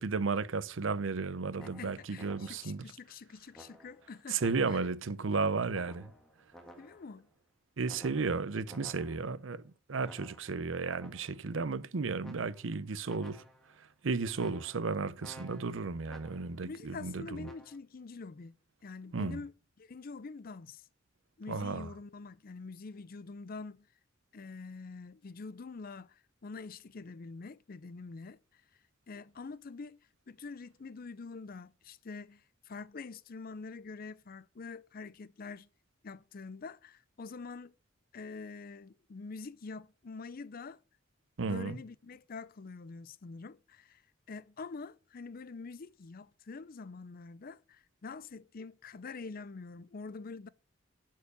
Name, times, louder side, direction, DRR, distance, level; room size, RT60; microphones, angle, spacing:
voice 1, 0.0-2.8 4.3-6.1 7.8-9.6 9.9-13.4 14.0-17.5 19.1-19.4 21.5-21.9 41.4-41.8, right 4 dB, 80° right, 0.7 m, -34 dB
voice 2, 1.6-4.8 6.8-7.3 16.6-18.6 18.8-20.9 21.4-23.9 24.3-28.4 29.1-30.0 30.3-35.7 36.0-37.7 38.1-40.8 41.5-44.0 44.3-50.5, left 4 dB, 50° left, 0.5 m, -45 dB
sound 1, 1.6-2.9 3.5-5.0 5.7-7.2 7.9-9.5 10.0-11.5 12.2-12.8 13.0-13.8 14.3-16.7 17.4-17.8, equal, ahead, 1.5 m, -55 dB
11.5 x 4.7 x 6.8 m
head